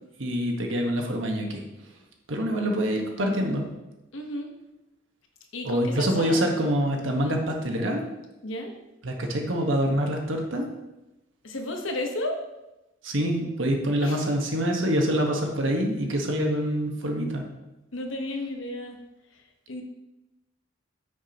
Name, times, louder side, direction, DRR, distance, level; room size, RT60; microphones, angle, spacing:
voice 1, 0.2-1.6 2.3-3.7 5.6-8.0 9.0-10.7 13.0-17.5, equal, 80° right, 2 dB, 1.4 m, -26 dB
voice 2, 4.1-4.5 5.5-6.5 7.2-7.4 8.4-8.7 11.4-12.4 14.0-14.2 17.9-19.0 19.3-19.4 19.7-19.8, left 1 dB, 85° left, 3 dB, 1.2 m, -33 dB
9.4 x 6.6 x 3.0 m, 0.98 s
head